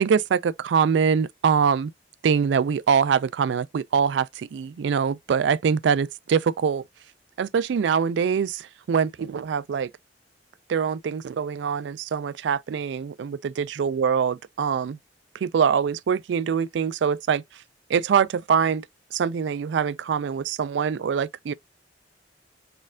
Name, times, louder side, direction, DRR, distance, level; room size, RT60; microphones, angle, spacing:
voice 1, 0.0-1.9 2.2-6.8 7.4-9.9 10.7-15.0 15.4-17.4 17.9-18.8 19.1-21.5, right 6 dB, 80° right, 0.3 m, -24 dB
4.3 x 2.4 x 3.6 m
head